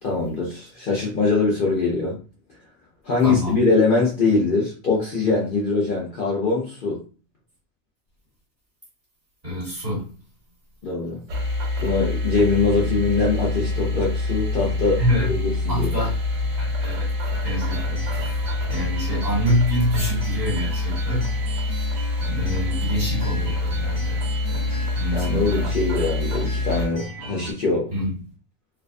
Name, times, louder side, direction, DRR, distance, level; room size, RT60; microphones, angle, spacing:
voice 1, 0.0-2.2 3.0-7.0 10.8-11.2 11.8-15.9 25.1-27.9, left 3 dB, 55° left, -4 dB, 0.7 m, -22 dB
voice 2, 3.2-3.6 9.4-10.1 15.0-15.3 15.7-16.2 16.5-17.1 17.4-21.9 22.3-25.6 27.9-28.1, equal, 35° right, -6 dB, 1.4 m, -27 dB
sound 1, 11.3-26.9, left 2 dB, 90° right, 1.0 m, -26 dB
sound 2, 17.3-27.5, right 3 dB, 55° right, 1.2 m, -37 dB
2.5 x 2.2 x 2.4 m, 0.37 s
omnidirectional pair, 1.2 m